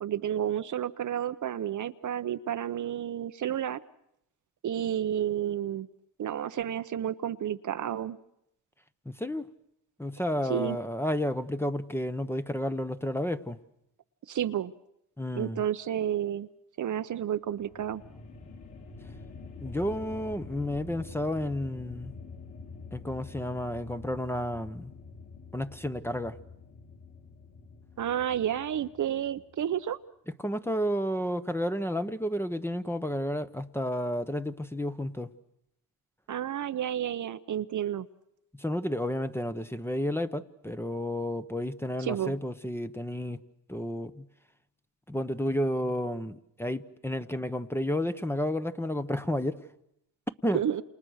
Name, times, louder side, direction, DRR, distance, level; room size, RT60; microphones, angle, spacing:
voice 1, 0.0-3.8 4.6-5.9 6.2-8.2 10.5-10.8 14.3-14.7 15.4-16.5 16.8-18.0 28.0-30.0 36.3-38.1 42.0-42.3 50.5-50.8, right 10 dB, 45° right, 0.9 m, -31 dB
voice 2, 9.0-9.5 10.0-13.6 15.2-15.6 19.6-22.1 22.9-24.9 25.5-26.4 30.4-35.3 38.5-43.4 43.7-44.3 45.1-49.6 50.4-50.6, equal, 5° left, 1.1 m, -31 dB
sound 1, 17.4-29.7, left 4 dB, 50° left, 4.9 m, -47 dB
28.5 x 28.5 x 6.5 m
cardioid pair, 85°, 40 cm